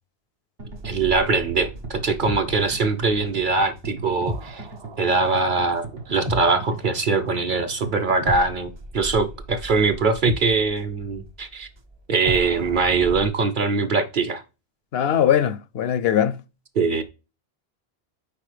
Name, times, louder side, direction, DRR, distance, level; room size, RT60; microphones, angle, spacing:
sound 1, 0.6-8.6, right 3 dB, 65° right, 1.9 m, -39 dB
sound 2, 0.7-7.8 8.3-13.3, right 1 dB, 30° right, 0.6 m, -36 dB
voice 1, 0.8-4.7 5.0-11.7 12.1-14.4 16.7-17.0, right 4 dB, 50° right, 1.0 m, -22 dB
voice 2, 14.9-16.4, left 9 dB, 75° left, 0.8 m, -20 dB
6.9 x 5.0 x 3.4 m
omnidirectional pair, 1.1 m